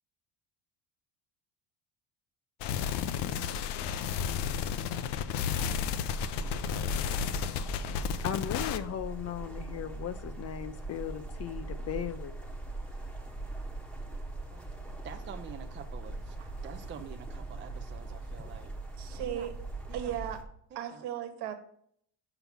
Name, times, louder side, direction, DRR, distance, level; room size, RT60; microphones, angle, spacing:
sound 1, 2.6-8.8, left 8 dB, 70° left, 0.7 m, -32 dB
sound 2, 6.1-20.4, right 2 dB, 5° left, 0.9 m, -40 dB
voice 1, 8.2-12.3, left 9 dB, 40° left, 11 dB, 0.5 m, -37 dB
voice 2, 14.5-16.4 16.6-18.7 19.1-19.5 19.9-20.2 20.7-21.1, right 8 dB, 30° right, 6 dB, 0.4 m, -47 dB
voice 3, 19.0-19.5 19.9-20.4 20.7-21.5, right 10 dB, 70° right, 7 dB, 1.4 m, -36 dB
5.8 x 5.7 x 6.9 m, 0.66 s
cardioid pair, 155°, 42 cm